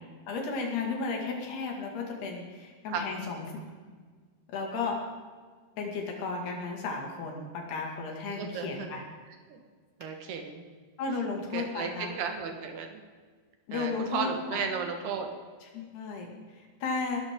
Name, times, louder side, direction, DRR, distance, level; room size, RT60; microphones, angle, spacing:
voice 1, 0.3-3.6 4.5-5.0 5.8-9.0 11.0-12.1 13.7-14.6 15.7-17.2, left 4 dB, 75° left, 1 dB, 4.2 m, -34 dB
voice 2, 8.4-8.9 9.5-9.6 10.0-10.7 11.5-13.0 13.7-15.3, right 5 dB, 75° right, 4 dB, 3.4 m, -34 dB
20.0 x 12.5 x 3.8 m, 1.5 s
omnidirectional pair, 4.7 m